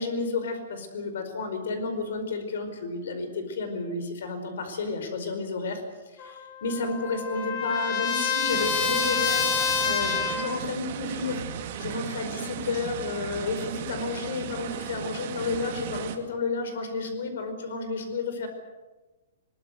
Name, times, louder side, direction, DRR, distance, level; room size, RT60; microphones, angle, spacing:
voice 1, 0.0-5.8 6.1-9.5 9.8-18.5, left 3 dB, 65° left, 8 dB, 4.9 m, -31 dB
Trumpet, 6.2-10.6, left 5 dB, 25° left, 1.9 m, -27 dB
sound 1, 8.5-16.1, right 9 dB, 35° right, 2.2 m, -36 dB
22.0 x 21.5 x 8.0 m, 1.2 s
hypercardioid pair, 175°, 0 cm